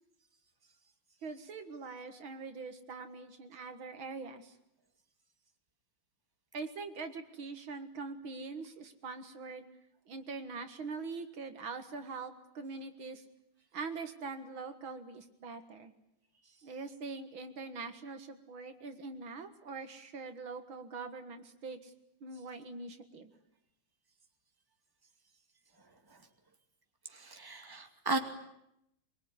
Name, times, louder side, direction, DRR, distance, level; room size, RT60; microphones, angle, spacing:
voice 1, 1.2-4.6 6.5-9.7 10.1-13.2 13.7-15.9 16.6-21.9 22.2-23.3, right 4 dB, 70° right, 7 dB, 2.5 m, -43 dB
voice 2, 27.1-28.2, right 2 dB, 10° right, 4 dB, 2.3 m, -35 dB
23.5 x 23.0 x 9.7 m, 0.80 s
omnidirectional pair, 2.3 m